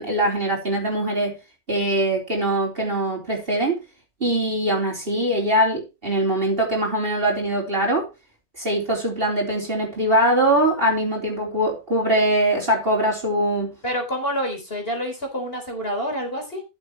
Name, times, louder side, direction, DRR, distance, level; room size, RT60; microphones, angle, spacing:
voice 1, 0.0-1.4 1.7-3.8 4.2-8.1 8.6-13.7, right 1 dB, 30° right, 4.0 m, -22 dB
voice 2, 13.8-16.6, equal, 30° left, 4.1 m, -27 dB
14.0 x 8.0 x 3.1 m
omnidirectional pair, 1.9 m